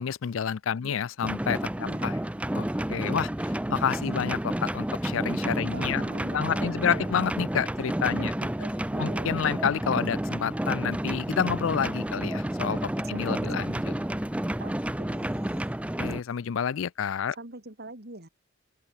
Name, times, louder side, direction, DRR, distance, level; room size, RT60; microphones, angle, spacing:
voice 1, 0.0-1.7 2.0-2.1 2.5-3.3 3.7-6.0 6.3-8.3 9.0-13.8 16.0-17.4, left 7 dB, 75° left, 0.4 m, -29 dB
sound 1, 1.2-16.2, right 1 dB, 5° right, 0.5 m, -30 dB
voice 2, 1.8-2.5 3.1-3.2 5.7-7.2 8.2-9.4 13.1-13.2 13.5-13.7 14.6-15.8 17.3-18.3, right 2 dB, 55° right, 4.3 m, -44 dB
open air
head